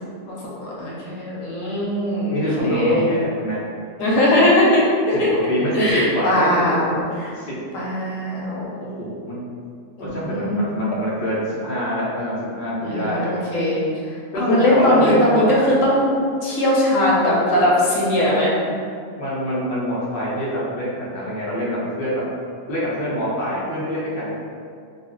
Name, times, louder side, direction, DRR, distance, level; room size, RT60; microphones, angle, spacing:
voice 1, 0.3-3.2 4.0-5.3 5.7-7.3 7.7-8.7 10.0-10.8 12.8-13.8 14.4-16.1 16.4-18.5, left 1 dB, 85° left, -5 dB, 1.1 m, -20 dB
voice 2, 2.3-3.6 5.1-5.2 5.5-6.5 7.4-7.5 8.8-9.4 10.0-13.2 14.3-15.6 19.2-22.2 22.7-24.4, equal, 45° left, -8 dB, 0.9 m, -25 dB
2.4 x 2.4 x 3.7 m, 2.3 s
omnidirectional pair, 1.4 m